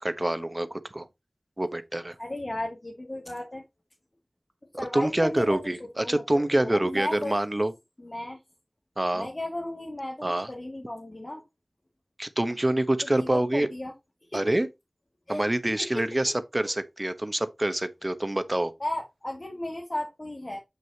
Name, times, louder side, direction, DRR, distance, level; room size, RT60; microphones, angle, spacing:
voice 1, 0.0-1.0 1.6-2.1 4.7-7.7 9.0-9.3 10.2-10.5 12.2-13.7 14.3-14.7 15.3-18.7, right 1 dB, 30° right, 1.1 m, -26 dB
voice 2, 2.2-3.6 4.8-5.6 6.0-7.4 8.0-8.4 9.1-11.4 13.1-13.9 14.3-14.5 15.3-15.4 15.8-16.0 18.8-20.6, left 1 dB, 40° left, 2.3 m, -35 dB
7.7 x 6.2 x 2.9 m
wide cardioid pair, 45°, 0 cm